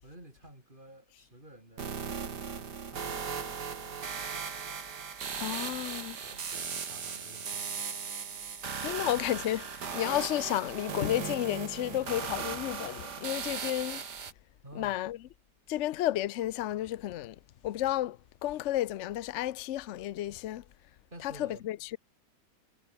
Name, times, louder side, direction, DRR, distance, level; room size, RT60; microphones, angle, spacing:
voice 1, 0.0-4.0 6.2-8.1 14.6-15.0 21.1-21.7, right 1 dB, 25° right, 8.2 m, -53 dB
sound 1, 1.8-14.3, right 6 dB, 70° right, 2.6 m, -37 dB
voice 2, 5.4-6.2 8.8-14.0 14.8-15.2 15.7-17.4 17.6-20.6 21.2-22.0, left 13 dB, 70° left, 0.7 m, -32 dB
omnidirectional pair, 1.9 m